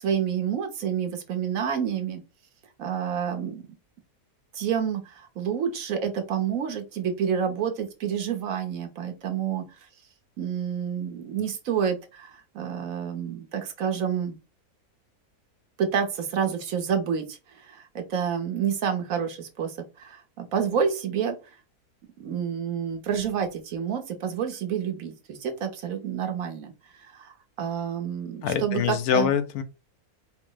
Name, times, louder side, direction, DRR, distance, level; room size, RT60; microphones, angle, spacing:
voice 1, 0.0-2.2 2.8-3.6 4.5-9.6 10.4-14.4 15.8-21.4 22.2-29.3, right 7 dB, 65° right, 1.2 m, -29 dB
voice 2, 28.4-29.6, left 8 dB, 80° left, 1.1 m, -24 dB
4.5 x 2.0 x 3.8 m
omnidirectional pair, 1.6 m